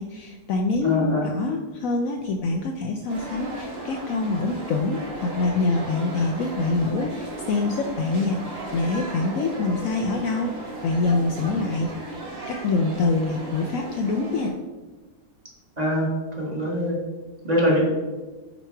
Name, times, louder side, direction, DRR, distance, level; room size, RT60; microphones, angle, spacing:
voice 1, 0.0-11.9 12.5-14.5, left 3 dB, 70° left, 3 dB, 0.9 m, -25 dB
voice 2, 0.8-1.3 15.8-16.1 16.4-16.9 17.4-17.8, equal, 25° right, -4 dB, 1.5 m, -23 dB
sound 1, 3.1-14.5, right 2 dB, 55° right, 2.0 m, -35 dB
8.2 x 3.0 x 4.5 m, 1.2 s
omnidirectional pair, 1.7 m